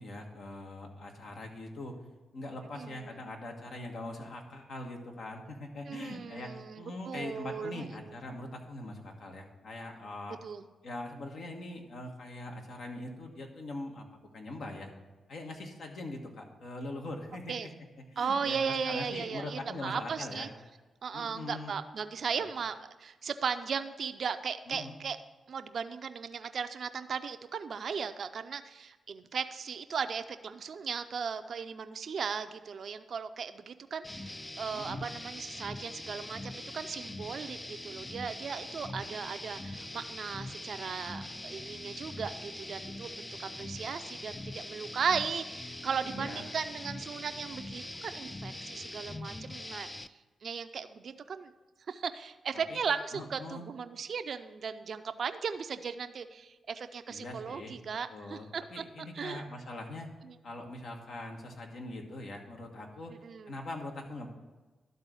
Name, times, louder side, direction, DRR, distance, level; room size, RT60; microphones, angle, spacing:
voice 1, 0.0-1.9 2.3-10.4 10.8-14.0 14.3-14.9 15.3-17.5 18.1-20.5 21.1-21.7 22.4-22.5 24.7-24.9 34.7-35.0 46.0-46.4 52.7-52.8 53.1-53.6 57.1-57.7 58.1-60.1 60.4-63.1 63.5-64.3, left 2 dB, 70° left, 2 dB, 1.4 m, -42 dB
voice 2, 2.7-3.2 5.9-8.2 10.4-10.6 17.5-17.7 18.2-20.5 21.0-25.2 25.5-49.9 50.4-51.5 51.9-58.8 59.1-59.4 63.1-63.6, right 6 dB, 65° right, 10 dB, 0.5 m, -37 dB
sound 1, 34.0-50.1, left 1 dB, 20° left, 0.4 m, -42 dB
12.0 x 4.0 x 6.2 m, 1.2 s
supercardioid pair, 55°, 0 cm